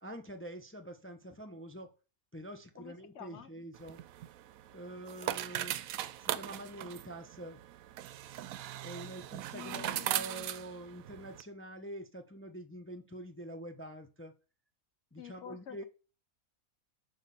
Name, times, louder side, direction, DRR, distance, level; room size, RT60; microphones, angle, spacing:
voice 1, 0.0-1.9 2.3-4.0 4.7-5.8 6.2-7.6 8.8-14.3 15.1-15.8, right 1 dB, 10° left, 0.7 m, -46 dB
voice 2, 2.8-3.5 9.5-10.5 15.2-15.8, left 9 dB, 60° left, 0.8 m, -49 dB
sound 1, 3.7-11.4, right 12 dB, 80° right, 1.0 m, -39 dB
6.5 x 5.3 x 5.4 m
omnidirectional pair, 1.5 m